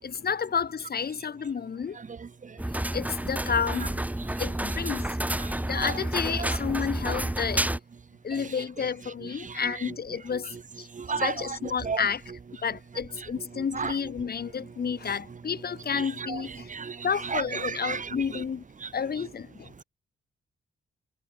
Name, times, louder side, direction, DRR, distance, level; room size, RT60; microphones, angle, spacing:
voice 1, 0.0-2.0 2.7-4.1 4.4-5.2 5.7-7.7 8.2-10.9 11.2-12.2 12.6-16.7 17.0-18.6 18.9-19.7, left 6 dB, 55° left, 7.0 m, -31 dB
sound 1, 2.6-7.8, right 1 dB, 10° right, 2.2 m, -30 dB
voice 2, 11.0-11.3 11.9-12.0 13.8-13.9 16.7-17.0 17.3-18.0, right 5 dB, 40° right, 2.4 m, -30 dB
cardioid pair, 85°, 19 cm